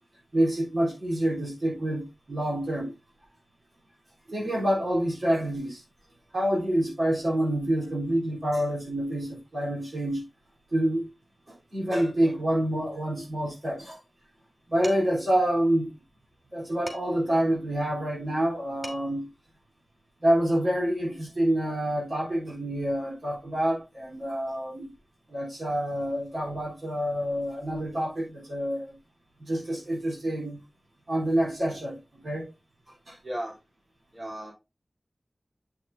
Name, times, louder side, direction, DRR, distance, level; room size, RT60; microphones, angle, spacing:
voice 1, 0.3-2.9 4.3-5.8 6.3-10.2 10.7-11.1 11.5-14.0 14.7-15.9 16.5-19.3 20.2-24.9 25.3-28.9 29.4-30.6 31.1-32.5 33.1-33.2, right 1 dB, 80° right, 3.8 m, -27 dB
Dishes pots and pans, 14.8-15.3 16.9-17.3 18.5-18.6 18.8-19.3, equal, 5° left, 2.7 m, -43 dB
voice 2, 33.2-33.6 34.1-34.5, right 1 dB, 40° right, 3.3 m, -35 dB
8.2 x 6.3 x 2.7 m
wide cardioid pair, 60°, 0 cm